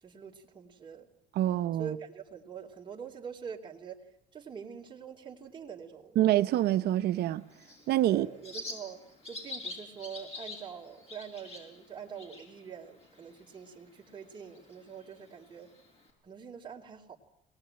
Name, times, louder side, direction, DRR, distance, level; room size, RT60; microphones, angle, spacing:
voice 1, 0.0-1.1 1.8-4.0 4.3-6.2 8.1-15.7 16.2-17.2, right 7 dB, 30° right, 2.8 m, -45 dB
voice 2, 1.3-2.0 6.2-7.4 7.9-8.3, right 13 dB, 70° right, 0.9 m, -26 dB
Bird, 7.1-16.1, left 2 dB, 35° left, 6.6 m, -47 dB
22.5 x 19.0 x 8.9 m
cardioid pair, 110°, 17 cm